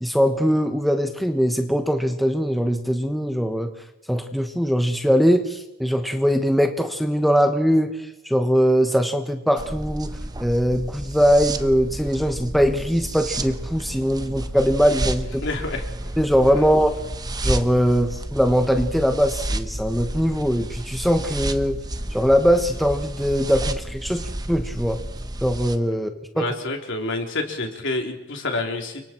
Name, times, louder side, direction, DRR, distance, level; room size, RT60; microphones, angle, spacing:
voice 1, 0.0-3.7 4.1-8.0 8.2-10.1 10.4-15.4 16.2-17.0 17.4-21.8 22.1-25.0 25.4-26.1 26.4-26.5, equal, ahead, 5 dB, 1.2 m, -21 dB
sound 1, 9.6-25.8, right 1 dB, 20° right, 1.0 m, -31 dB
voice 2, 15.4-15.9 16.6-16.7 26.3-29.0, left 2 dB, 60° left, 3 dB, 3.6 m, -28 dB
30.0 x 24.5 x 4.5 m, 0.92 s
head